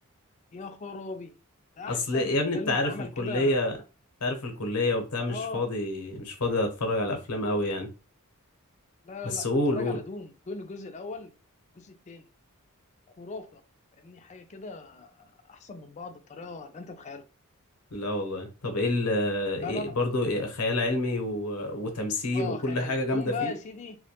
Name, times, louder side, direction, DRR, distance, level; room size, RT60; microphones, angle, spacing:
voice 1, 0.5-1.3 1.8-3.8 5.3-5.6 9.0-11.3 11.7-12.2 13.2-13.6 14.0-17.2 19.6-20.0 22.3-24.0, left 3 dB, 30° left, 0.3 m, -39 dB
voice 2, 1.9-3.8 4.2-7.9 9.2-10.0 17.9-23.5, left 2 dB, 90° left, 0.7 m, -28 dB
2.2 x 2.1 x 2.8 m
head